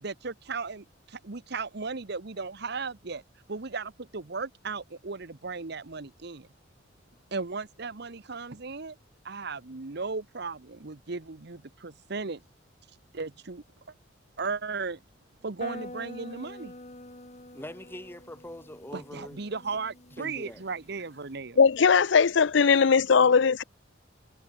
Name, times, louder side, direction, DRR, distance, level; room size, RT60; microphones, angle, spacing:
voice 1, 0.0-3.2 3.5-6.5 7.3-8.9 9.2-12.4 13.1-13.6 14.4-15.0 15.4-16.7 18.9-21.6, right 4 dB, 55° right, 1.0 m, -36 dB
sound 1, 15.6-21.4, left 1 dB, 35° left, 6.4 m, -46 dB
voice 2, 17.5-19.4 20.1-20.7, left 1 dB, 10° left, 5.8 m, -43 dB
voice 3, 21.6-23.6, left 5 dB, 65° left, 0.5 m, -20 dB
head